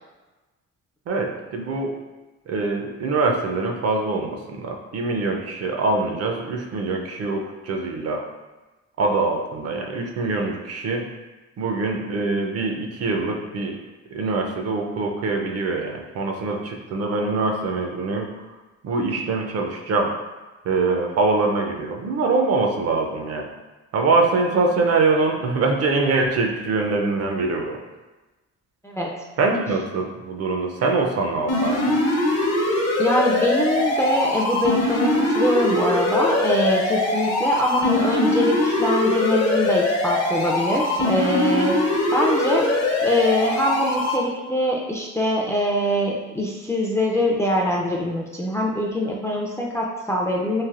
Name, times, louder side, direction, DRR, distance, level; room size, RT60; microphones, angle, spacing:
voice 1, 1.1-1.9 2.5-8.2 9.0-11.0 11.6-13.8 14.1-18.3 18.8-20.1 20.6-23.5 23.9-27.8 29.4-32.0, right 3 dB, 55° right, 2 dB, 0.5 m, -23 dB
sound 1, 31.5-44.2, left 1 dB, 55° left, 0.7 m, -22 dB
voice 2, 33.0-41.8 42.1-42.7 43.0-50.6, left 1 dB, 10° left, -2 dB, 0.3 m, -23 dB
3.2 x 2.5 x 2.4 m, 1.1 s
cardioid pair, 90°, 30 cm